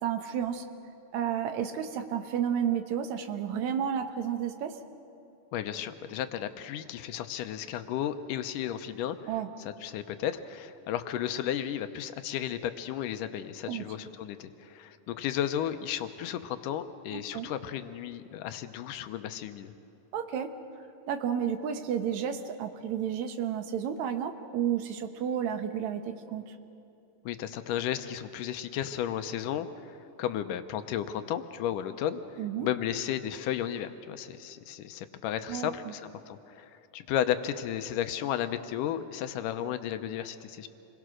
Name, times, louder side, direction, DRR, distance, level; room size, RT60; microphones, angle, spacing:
voice 1, 0.0-0.6 1.1-4.8 9.3-9.5 13.7-13.8 17.1-17.5 20.1-20.5 21.1-26.5 32.4-32.7 35.5-35.9, right 8 dB, 65° right, 7 dB, 2.4 m, -31 dB
voice 2, 5.5-9.2 9.6-19.7 27.3-36.0 36.3-40.7, left 10 dB, 90° left, 9 dB, 2.4 m, -34 dB
27.5 x 22.0 x 6.3 m, 2.8 s
omnidirectional pair, 3.7 m